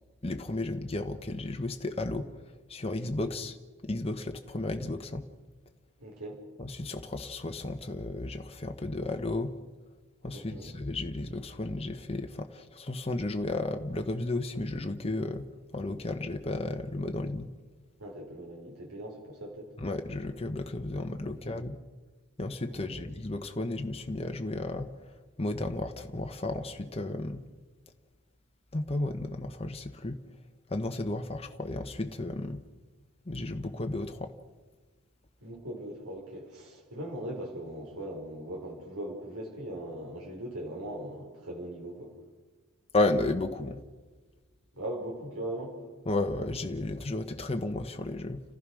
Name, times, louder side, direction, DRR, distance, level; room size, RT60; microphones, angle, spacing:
voice 1, 0.2-2.3 2.7-3.6 3.8-5.2 6.6-9.5 10.2-15.5 15.7-17.5 19.8-21.8 22.4-24.9 25.4-27.4 28.7-30.2 30.7-32.6 33.3-34.3 42.9-43.8 46.1-48.4, left 2 dB, 25° left, 5 dB, 1.1 m, -33 dB
voice 2, 6.0-6.4 10.3-10.7 18.0-19.7 21.3-21.4 22.7-23.1 35.4-42.1 44.7-45.7, right 1 dB, 70° right, -1 dB, 5.4 m, -40 dB
30.0 x 15.0 x 6.3 m, 1.4 s
head